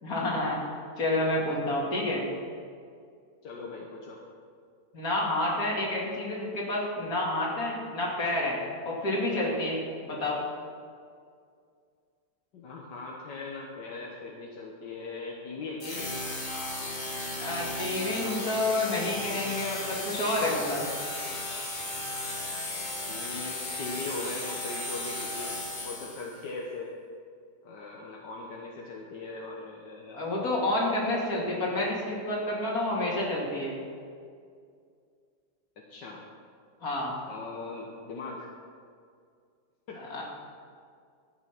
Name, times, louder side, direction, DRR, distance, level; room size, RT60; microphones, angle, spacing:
voice 1, 0.0-0.6 1.0-2.2 4.9-8.6 8.8-10.4 17.4-20.8 30.1-33.7 36.8-37.1 40.0-40.2, left 1 dB, 55° left, -3 dB, 3.0 m, -29 dB
voice 2, 3.4-4.2 12.5-16.3 23.1-26.9 27.6-30.2 35.9-36.2 37.3-38.5 39.9-40.0, left 3 dB, 80° left, -2 dB, 1.8 m, -40 dB
sound 1, 15.8-26.4, left 2 dB, 30° left, 2.2 m, -35 dB
13.0 x 9.0 x 6.0 m, 2.2 s
omnidirectional pair, 1.8 m